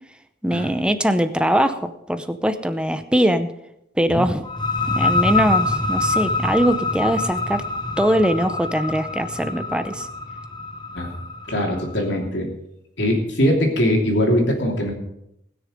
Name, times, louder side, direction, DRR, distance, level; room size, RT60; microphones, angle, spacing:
voice 1, 0.4-3.5 4.0-4.5 4.9-7.6 8.0-10.1, equal, 5° right, 9 dB, 0.6 m, -21 dB
sound 1, 4.4-11.9, left 3 dB, 20° left, 0.9 m, -25 dB
voice 2, 11.5-12.5 13.0-14.9, equal, 65° left, 1 dB, 2.9 m, -21 dB
20.0 x 6.6 x 5.1 m, 0.81 s
head